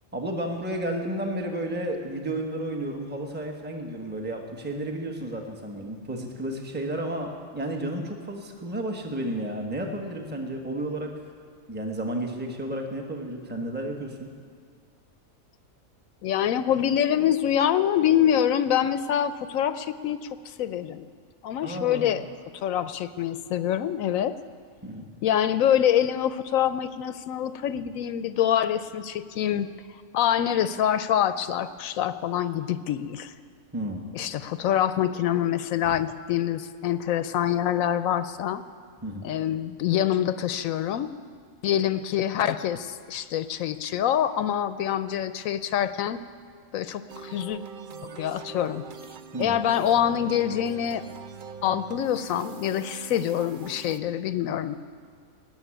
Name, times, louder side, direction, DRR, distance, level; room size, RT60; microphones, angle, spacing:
voice 1, 0.1-11.1 11.7-14.3 21.6-22.1 24.8-25.0 33.7-34.1 39.0-39.3 49.3-49.6, right 1 dB, 10° right, 2 dB, 1.1 m, -32 dB
voice 2, 16.2-21.1 21.4-22.3 22.5-24.3 25.2-29.7 30.1-33.3 34.1-38.6 39.2-41.1 41.6-46.2 46.7-47.6 48.2-48.8 49.4-51.0 51.6-54.8, left 10 dB, 75° left, 13 dB, 1.0 m, -25 dB
sound 1, 47.1-54.0, right 5 dB, 55° right, 0.6 m, -42 dB
18.0 x 7.1 x 10.0 m, 2.1 s
omnidirectional pair, 1.4 m